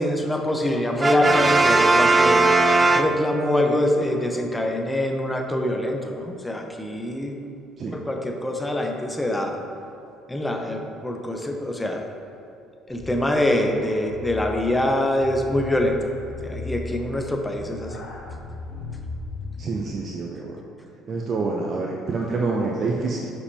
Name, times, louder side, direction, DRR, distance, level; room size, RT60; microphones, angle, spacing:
voice 1, 0.0-2.5 2.9-7.3 7.9-9.6 10.3-12.0 12.9-16.0 16.4-18.0, left 1 dB, 10° left, 3 dB, 0.9 m, -24 dB
Brass instrument, 1.0-3.7, right 3 dB, 25° right, 0.3 m, -18 dB
sound 1, 12.9-19.8, left 3 dB, 55° left, 1.5 m, -37 dB
voice 2, 19.6-20.6 21.1-23.3, right 3 dB, 45° right, -1 dB, 0.7 m, -27 dB
9.5 x 5.6 x 2.9 m, 2.6 s
hypercardioid pair, 60°, 0 cm